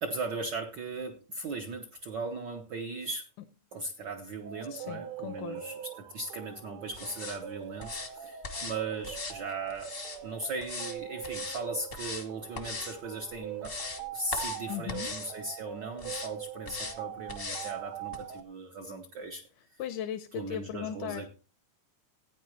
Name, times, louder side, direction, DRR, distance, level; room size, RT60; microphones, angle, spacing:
voice 1, 0.0-3.3 3.7-9.9 10.2-13.7 14.1-19.5 20.3-21.3, right 3 dB, 90° right, 4 dB, 0.9 m, -38 dB
sound 1, 4.4-18.4, right 9 dB, 70° right, 1.3 m, -43 dB
voice 2, 4.7-5.6 14.7-15.1 19.8-21.3, left 10 dB, 85° left, 9 dB, 2.3 m, -37 dB
sound 2, 6.9-7.4 7.8-8.1 8.4-8.8 9.0-10.2 10.6-11.0 11.2-11.6 11.9-12.3 12.5-12.9 13.4-14.0 14.3-14.6 14.9-15.3 16.0-16.3 16.6-17.0 17.3-17.7 18.1-18.2, left 4 dB, 60° left, 0.5 m, -39 dB
16.0 x 9.6 x 3.0 m, 0.33 s
omnidirectional pair, 3.6 m